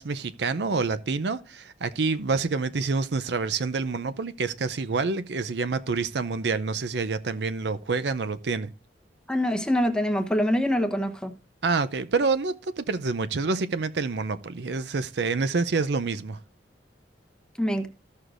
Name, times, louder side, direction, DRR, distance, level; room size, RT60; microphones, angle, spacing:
voice 1, 0.0-8.7 11.6-16.4, right 4 dB, 70° right, 0.6 m, -27 dB
voice 2, 9.3-11.3 17.6-17.9, equal, 5° left, 0.9 m, -24 dB
14.0 x 6.4 x 2.5 m
head